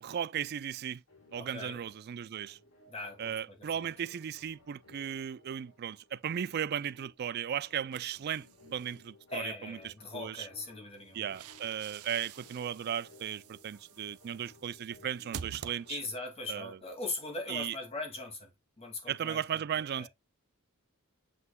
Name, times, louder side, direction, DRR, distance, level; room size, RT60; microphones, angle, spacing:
voice 1, 0.0-1.0 1.3-2.6 3.2-10.5 11.1-16.0 16.5-16.8 17.5-17.8 19.1-20.1, right 9 dB, 45° right, 0.3 m, -36 dB
sound 1, 1.1-16.1, left 2 dB, 90° left, 4.8 m, -60 dB
voice 2, 1.4-1.8 2.9-3.3 3.6-3.7 9.3-11.2 15.9-18.5 18.8-19.6 20.0-20.1, left 2 dB, 25° left, 2.3 m, -40 dB
sound 2, 7.9-9.0 10.9-16.3, right 7 dB, 80° right, 0.6 m, -48 dB
7.6 x 5.8 x 2.3 m
head